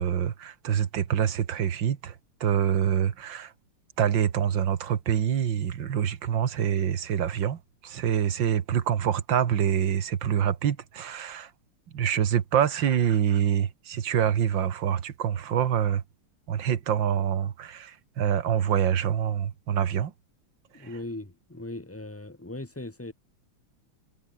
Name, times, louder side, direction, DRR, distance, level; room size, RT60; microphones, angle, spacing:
voice 1, 0.0-2.1 2.4-3.5 4.0-7.6 7.8-11.5 11.9-16.0 16.5-20.1, right 9 dB, 60° right, 2.1 m, -26 dB
voice 2, 20.7-23.1, left 2 dB, 10° left, 0.7 m, -38 dB
omnidirectional pair, 2.4 m